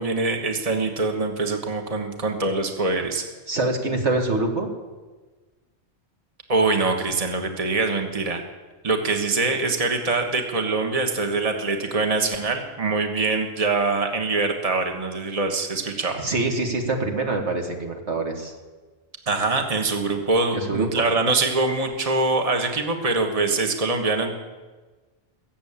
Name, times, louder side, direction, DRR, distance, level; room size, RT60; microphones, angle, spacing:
voice 1, 0.0-3.2 6.5-8.4 8.8-16.2 19.3-24.3, right 3 dB, 35° right, 4 dB, 1.4 m, -24 dB
voice 2, 3.5-4.7 16.2-18.5 20.5-21.1, right 2 dB, 85° right, 2 dB, 2.3 m, -25 dB
21.0 x 7.5 x 8.7 m, 1.3 s
omnidirectional pair, 1.1 m